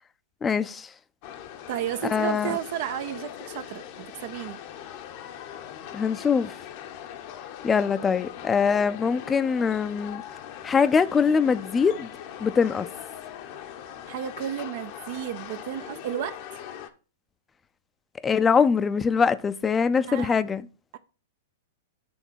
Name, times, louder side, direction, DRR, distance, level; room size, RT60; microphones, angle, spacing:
voice 1, 0.4-0.9 2.1-2.5 5.9-6.5 7.6-10.2 10.6-12.1 12.4-12.9 18.2-20.7, left 6 dB, 20° left, 0.5 m, -23 dB
sound 1, 1.2-16.9, left 10 dB, 50° left, 0.8 m, -41 dB
voice 2, 1.7-4.6 14.1-16.6 20.1-20.3, right 11 dB, 55° right, 0.5 m, -33 dB
7.0 x 3.6 x 5.6 m
hypercardioid pair, 115°, 0 cm